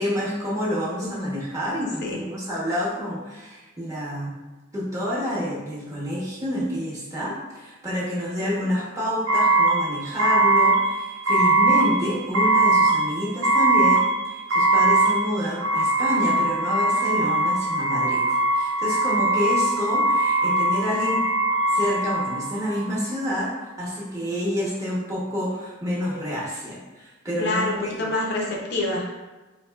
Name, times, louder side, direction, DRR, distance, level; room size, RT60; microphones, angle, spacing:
voice 1, 0.0-4.4 4.7-18.2 18.5-21.2 21.7-23.5 23.8-28.1, equal, 15° right, -6 dB, 0.8 m, -28 dB
sound 1, 9.3-22.9, right 2 dB, 80° right, 0.7 m, -21 dB
voice 2, 27.4-29.1, left 2 dB, 55° left, -1 dB, 0.5 m, -26 dB
4.0 x 2.6 x 2.2 m, 1.2 s
head